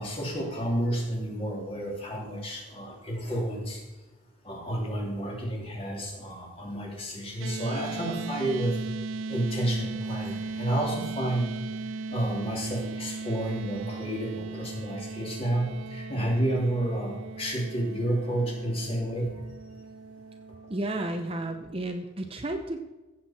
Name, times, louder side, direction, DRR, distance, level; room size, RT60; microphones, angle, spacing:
voice 1, 0.0-3.8 4.4-8.8 9.3-11.5 12.1-19.3, right 1 dB, 30° left, -2 dB, 2.9 m, -30 dB
sound 1, 7.4-21.8, right 3 dB, 80° right, 0.5 m, -38 dB
voice 2, 20.7-22.8, right 1 dB, 30° right, 5 dB, 0.8 m, -32 dB
16.0 x 7.7 x 4.4 m, 1.1 s
head